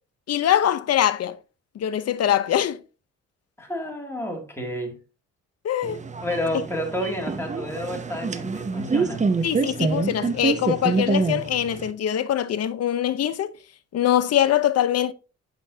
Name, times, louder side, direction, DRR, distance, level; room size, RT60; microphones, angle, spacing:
voice 1, 0.3-1.4 1.7-2.8 5.6-6.0 9.4-13.5 13.9-15.1, left 11 dB, 55° left, 0.7 m, -23 dB
voice 2, 3.6-5.0 6.2-9.2, left 1 dB, 10° left, 2.4 m, -30 dB
sound 1, 5.8-11.9, right 4 dB, 25° right, 0.7 m, -26 dB
7.5 x 6.0 x 2.7 m
cardioid pair, 90°, 30 cm